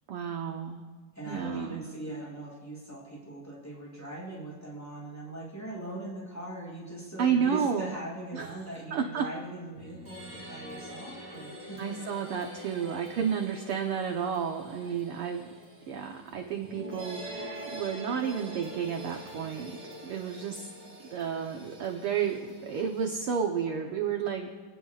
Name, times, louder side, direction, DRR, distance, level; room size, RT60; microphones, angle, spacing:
voice 1, 0.1-0.8 1.3-1.9 7.2-7.9 8.3-8.5 8.9-9.2 11.8-15.5 15.9-19.8 20.0-20.7 21.1-24.5, right 7 dB, 60° right, 3 dB, 1.6 m, -31 dB
voice 2, 1.1-11.8 14.8-15.0, right 1 dB, 5° left, -5 dB, 6.5 m, -41 dB
sound 1, 9.7-23.2, right 1 dB, 30° right, 5.7 m, -45 dB
29.0 x 19.5 x 2.5 m, 1.4 s
omnidirectional pair, 3.5 m